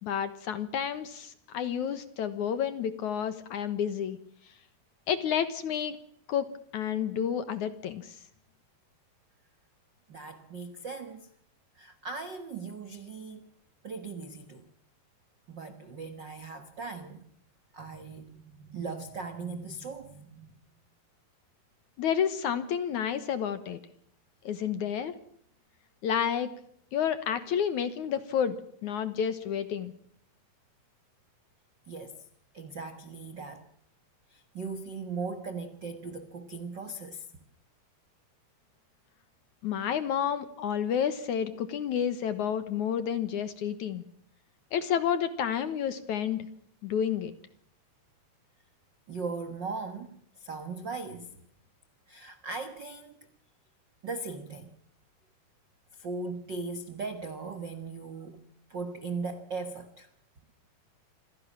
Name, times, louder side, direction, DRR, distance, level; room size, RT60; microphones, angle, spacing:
voice 1, 0.0-4.2 5.1-6.0 6.3-6.5 6.7-8.2 22.0-23.8 24.4-25.2 26.0-26.5 26.9-28.6 28.8-29.9 39.6-44.0 44.7-46.5 46.8-47.3, left 8 dB, 65° left, 2.1 m, -30 dB
voice 2, 10.1-11.3 11.8-13.5 13.8-14.6 15.5-17.2 17.7-20.5 31.9-32.2 32.5-33.7 34.3-37.2 49.1-51.3 52.1-53.1 54.0-54.7 56.0-58.4 58.7-60.1, right 4 dB, 75° right, 1.0 m, -38 dB
27.0 x 17.0 x 7.4 m
omnidirectional pair, 4.6 m